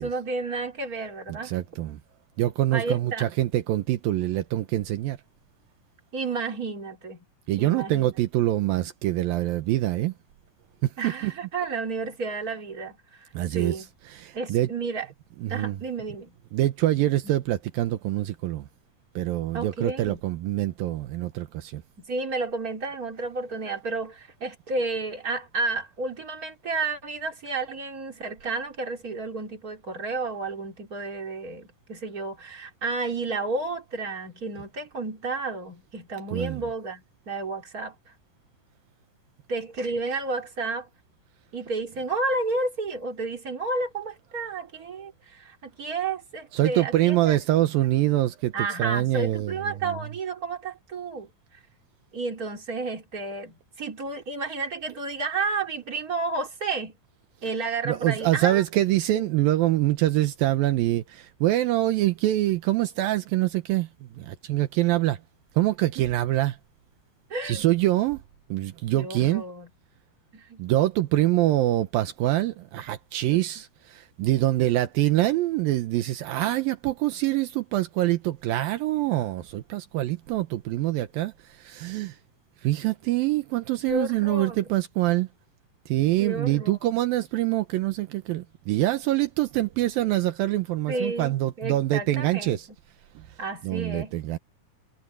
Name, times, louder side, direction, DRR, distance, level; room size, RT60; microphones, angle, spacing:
voice 1, 0.0-1.5 2.7-3.3 6.1-7.2 7.6-8.1 11.0-13.9 14.3-15.1 15.5-16.3 19.5-20.2 22.0-37.9 39.5-40.9 41.5-47.4 48.5-51.3 52.1-57.0 57.4-58.6 59.1-59.3 66.0-66.1 67.3-67.6 68.9-69.7 70.3-70.6 73.3-73.4 83.9-84.6 86.2-86.8 90.9-92.6 93.4-94.1, right 3 dB, 25° right, 4.0 m, -31 dB
voice 2, 1.3-2.0 2.4-5.2 7.5-10.1 10.8-11.3 13.3-14.7 15.4-15.8 16.5-18.7 19.2-21.8 36.3-36.7 46.5-49.6 49.8-50.0 57.9-65.2 65.5-66.6 67.4-68.2 68.5-69.4 70.6-82.2 82.6-85.3 85.9-92.7 93.2-93.4 93.6-94.4, right 15 dB, 80° right, 2.7 m, -25 dB
omnidirectional pair, 4.2 m